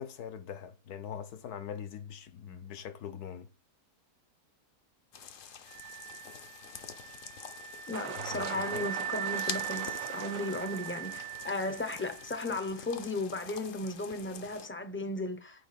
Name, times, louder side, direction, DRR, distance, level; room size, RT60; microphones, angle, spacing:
voice 1, 0.0-3.5 8.2-8.9, left 8 dB, 75° left, 1.4 m, -42 dB
sound 1, 5.1-14.7, left 7 dB, 60° left, 1.1 m, -46 dB
sound 2, 5.7-12.5, right 9 dB, 40° right, 0.8 m, -40 dB
voice 2, 7.9-15.7, left 2 dB, 15° left, 0.5 m, -35 dB
sound 3, 7.9-11.7, right 10 dB, 70° right, 0.9 m, -42 dB
6.1 x 4.4 x 5.9 m
omnidirectional pair, 1.7 m